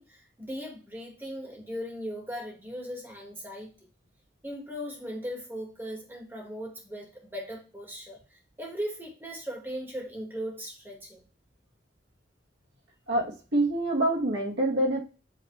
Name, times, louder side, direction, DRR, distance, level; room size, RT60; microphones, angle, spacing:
voice 1, 0.0-3.7 4.4-8.2 8.6-11.2, equal, 10° right, -1 dB, 2.0 m, -38 dB
voice 2, 13.1-15.0, right 1 dB, 75° right, -2 dB, 2.2 m, -26 dB
8.2 x 3.6 x 3.2 m, 0.34 s
head